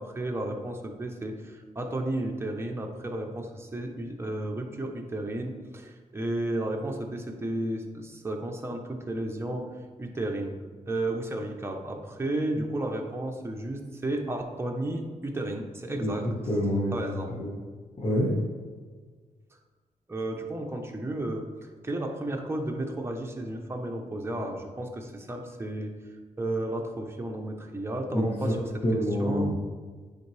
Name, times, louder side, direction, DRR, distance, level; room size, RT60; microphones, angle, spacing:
voice 1, 0.0-9.7 10.0-10.5 10.8-16.3 16.9-17.3 20.1-21.5 21.8-25.9 26.4-28.6 28.9-29.5, right 1 dB, 20° right, 2 dB, 1.0 m, -33 dB
voice 2, 16.5-16.9 17.3-17.5 18.0-18.3 28.1-28.3 28.8-29.5, equal, 40° left, -7 dB, 1.6 m, -26 dB
9.2 x 4.5 x 3.4 m, 1.5 s
cardioid pair, 90°, 14 cm